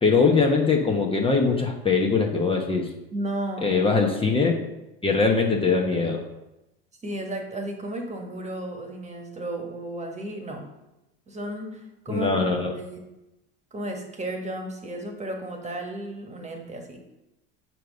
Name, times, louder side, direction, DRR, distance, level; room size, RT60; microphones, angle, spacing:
voice 1, 0.0-2.9 3.6-4.6 5.0-6.2 12.1-12.7, left 4 dB, 20° left, 1 dB, 1.2 m, -22 dB
voice 2, 3.1-3.7 7.0-10.6 11.3-13.0 13.7-17.0, right 1 dB, 20° right, 2 dB, 1.6 m, -33 dB
6.6 x 4.6 x 5.2 m, 0.95 s
hypercardioid pair, 90°, 31 cm